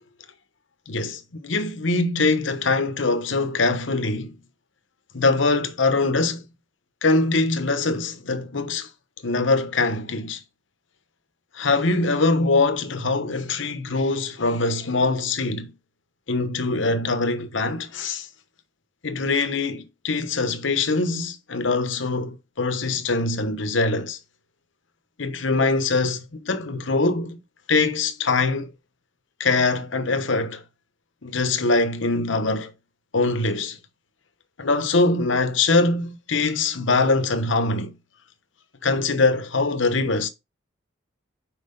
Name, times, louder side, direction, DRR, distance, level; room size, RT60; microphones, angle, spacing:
voice 1, 0.9-4.4 5.1-6.4 7.0-8.9 9.2-10.4 11.5-15.7 16.3-18.3 19.0-24.2 25.2-27.4 27.7-28.7 29.4-30.6 31.2-32.7 33.1-33.8 34.6-37.9 38.8-40.3, left 3 dB, 70° left, 1.0 m, -23 dB
5.7 x 4.8 x 5.2 m
head